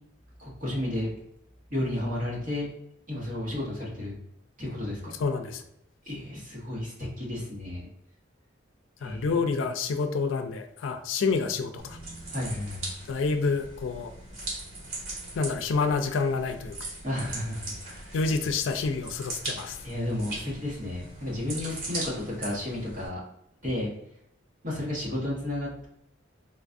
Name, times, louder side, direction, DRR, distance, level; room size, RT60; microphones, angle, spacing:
voice 1, 0.4-1.1 1.7-2.6 3.1-4.1 4.6-5.1 6.0-7.9 9.0-9.6 12.3-12.9 17.0-18.2 19.8-23.2 23.6-23.9 24.6-25.9, left 1 dB, 45° right, -5 dB, 1.3 m, -32 dB
voice 2, 5.2-5.6 9.0-12.0 13.1-14.1 15.3-16.8 18.1-19.8, left 4 dB, 80° left, 7 dB, 0.4 m, -28 dB
sound 1, 11.8-23.1, right 2 dB, 85° right, 1.3 m, -40 dB
3.9 x 2.4 x 2.5 m, 0.79 s
head